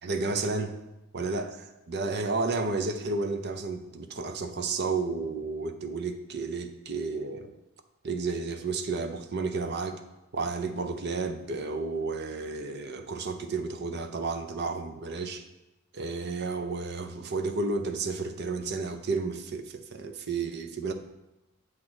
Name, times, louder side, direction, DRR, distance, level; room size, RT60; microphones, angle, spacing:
voice 1, 0.0-0.7 1.1-7.5 8.0-9.9 10.3-15.4 15.9-20.9, right 3 dB, 50° right, 7 dB, 0.6 m, -32 dB
7.4 x 3.8 x 6.2 m, 0.94 s
head